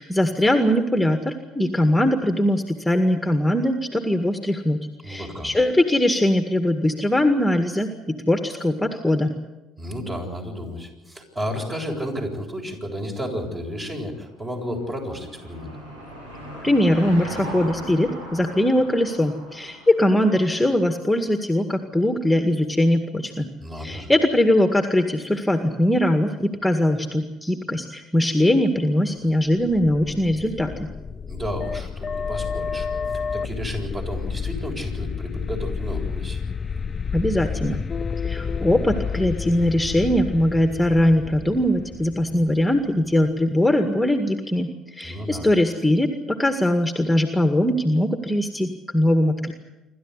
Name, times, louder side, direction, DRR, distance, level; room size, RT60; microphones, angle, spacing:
voice 1, 0.0-9.3 16.6-23.5 23.8-30.9 37.1-37.8 38.2-49.5, left 1 dB, 5° left, 7 dB, 1.9 m, -21 dB
voice 2, 5.0-5.5 9.8-15.7 23.6-24.1 31.2-32.9 33.3-36.4 45.0-45.5, equal, 30° right, 3 dB, 7.9 m, -32 dB
Car passing by / Engine, 13.9-20.8, equal, 85° right, 7.3 m, -38 dB
sound 1, 29.5-43.2, left 6 dB, 35° left, 0.8 m, -30 dB
27.5 x 13.0 x 9.8 m, 1.1 s
hypercardioid pair, 60°, 0 cm